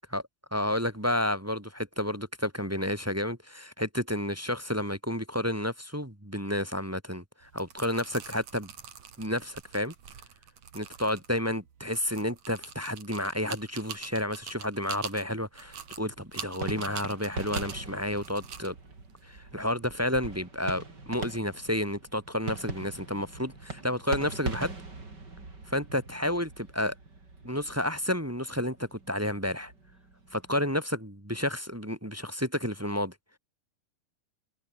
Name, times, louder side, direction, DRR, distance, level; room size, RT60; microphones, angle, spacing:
voice 1, 0.5-8.7 9.2-9.9 10.7-18.7 19.2-24.8 25.7-26.9 27.4-29.7 30.3-33.1, left 1 dB, 5° right, 1.5 m, -31 dB
sound 1, 7.4-20.2, right 8 dB, 60° right, 3.7 m, -45 dB
sound 2, 15.6-30.7, right 3 dB, 30° right, 5.0 m, -42 dB
open air
omnidirectional pair, 3.7 m